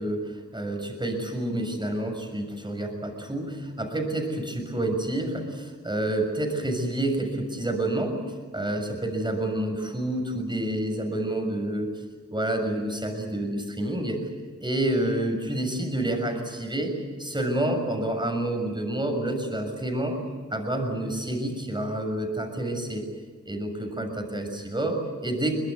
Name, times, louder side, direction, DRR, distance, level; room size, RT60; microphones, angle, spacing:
voice 1, 0.0-8.2 8.5-11.9 12.3-14.2 14.6-20.2 20.5-23.1 23.4-25.5, right 1 dB, 15° right, 4 dB, 6.8 m, -28 dB
23.5 x 21.0 x 9.6 m, 1.5 s
cardioid pair, 55°, 31 cm